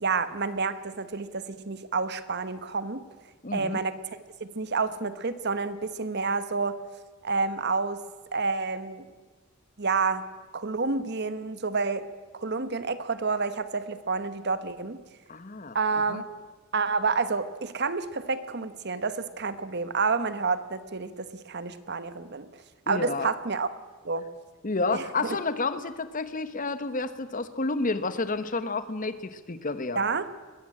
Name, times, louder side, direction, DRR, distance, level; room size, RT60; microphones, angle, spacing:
voice 1, 0.0-3.0 3.5-4.0 4.4-6.8 7.2-8.0 8.3-9.1 9.8-10.2 10.5-12.0 12.3-15.0 15.7-16.4 16.7-22.5 22.9-23.7 24.0-24.3 24.9-25.0 25.3-25.4 29.9-30.3, right 4 dB, 50° right, 13 dB, 1.1 m, -29 dB
voice 2, 3.4-3.8 15.3-15.8 16.1-16.2 22.9-23.3 24.6-30.0, left 3 dB, 40° left, 12 dB, 1.1 m, -30 dB
21.0 x 15.5 x 8.7 m, 1.3 s
head